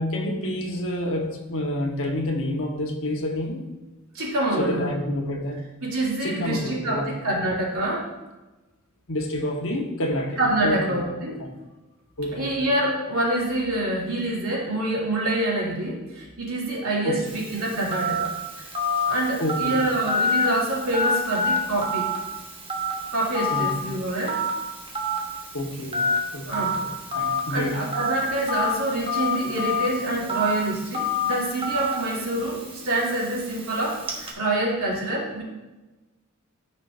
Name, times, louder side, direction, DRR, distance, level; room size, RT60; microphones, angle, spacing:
voice 1, 0.0-3.7 4.6-5.6 6.2-7.1 9.1-11.0 11.3-11.5 12.2-12.6 17.0-17.3 19.4-19.7 23.5-23.8 25.5-26.0 26.3-27.8, left 1 dB, 65° left, 2 dB, 1.2 m, -28 dB
voice 2, 4.1-4.9 5.8-8.1 10.4-11.4 12.3-18.6 19.0-22.1 23.1-24.4 26.5-26.7 27.5-35.4, right 1 dB, 70° right, -5 dB, 2.8 m, -26 dB
Telephone, 17.3-34.3, left 1 dB, 25° right, 1.2 m, -28 dB
13.5 x 5.4 x 2.6 m, 1.1 s
head